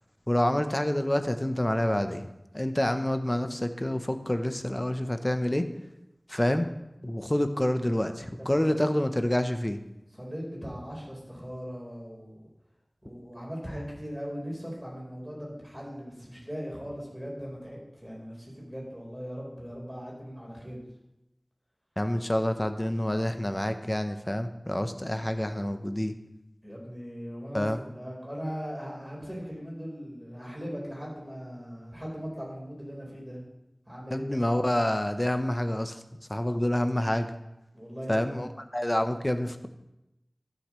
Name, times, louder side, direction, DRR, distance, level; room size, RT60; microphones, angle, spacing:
voice 1, 0.3-2.2 2.5-5.6 6.3-6.7 7.0-9.8 22.0-26.1 27.5-27.8 34.1-36.0 36.3-37.3 38.1-39.7, left 1 dB, 25° left, 8 dB, 0.8 m, -27 dB
voice 2, 8.4-8.8 10.1-12.4 13.0-20.8 26.6-33.4 33.9-34.4 37.7-38.5, equal, 5° right, -3 dB, 4.2 m, -39 dB
13.0 x 7.8 x 3.1 m, 0.90 s
wide cardioid pair, 40°, 0 cm